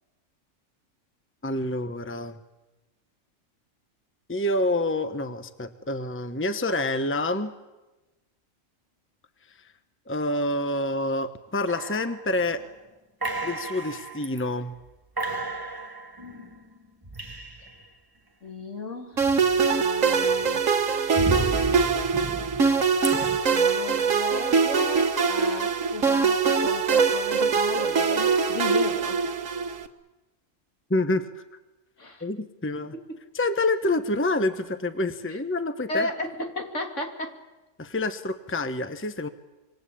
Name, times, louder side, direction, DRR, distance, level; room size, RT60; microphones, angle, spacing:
voice 1, 1.4-2.4 4.3-7.5 10.1-12.6 13.4-14.7 30.9-31.3 32.2-32.9 33.3-36.1 37.8-39.3, left 2 dB, 10° left, 10 dB, 1.1 m, -27 dB
sound 1, 11.7-12.6 13.2-14.4 14.8-14.9 15.2-17.9 19.2-19.9 20.3-23.4, right 2 dB, 15° right, 1.4 m, -34 dB
voice 2, 18.4-19.3 19.7-20.7 23.5-29.2 32.0-32.3 32.8-33.2 35.3-35.4 35.9-37.4, left 2 dB, 65° left, 3 dB, 3.2 m, -34 dB
sound 2, 19.2-29.8, right 5 dB, 75° right, 1.8 m, -23 dB
26.5 x 25.0 x 8.6 m, 1.1 s
omnidirectional pair, 1.4 m